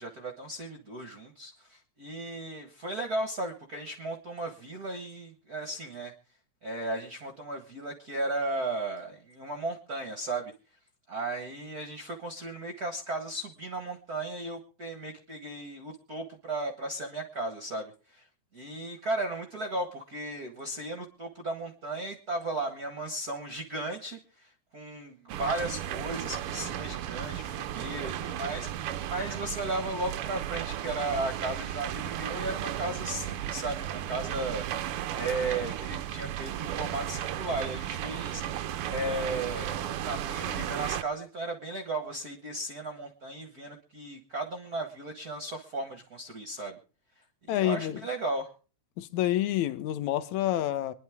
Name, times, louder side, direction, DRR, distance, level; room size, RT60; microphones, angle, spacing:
voice 1, 0.0-6.1 6.6-10.5 11.1-18.3 18.5-46.8 47.1-48.5, right 2 dB, 45° right, 1.4 m, -35 dB
sound 1, 25.3-41.0, right 11 dB, 70° right, 1.3 m, -34 dB
voice 2, 47.5-48.0 49.0-50.9, left 13 dB, 80° left, 2.3 m, -28 dB
25.0 x 11.0 x 3.5 m
omnidirectional pair, 3.3 m